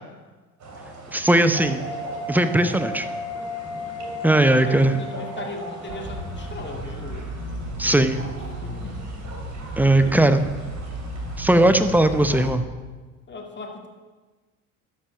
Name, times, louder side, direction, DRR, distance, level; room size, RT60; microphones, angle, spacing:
sound 1, 0.6-12.5, right 2 dB, 40° right, 3.0 m, -40 dB
voice 1, 1.1-1.8 2.3-3.1 4.2-4.9 7.8-8.2 9.8-10.4 11.4-12.6, right 1 dB, 5° right, 10 dB, 0.7 m, -18 dB
sound 2, 1.5-6.8, left 3 dB, 70° left, 2.9 m, -35 dB
voice 2, 4.5-7.3 8.6-9.0 10.0-10.2 13.3-13.9, left 2 dB, 25° left, 2 dB, 2.1 m, -37 dB
sound 3, 5.9-12.6, equal, 60° right, 2.8 m, -34 dB
12.5 x 6.0 x 5.9 m, 1.3 s
hypercardioid pair, 65°, 44 cm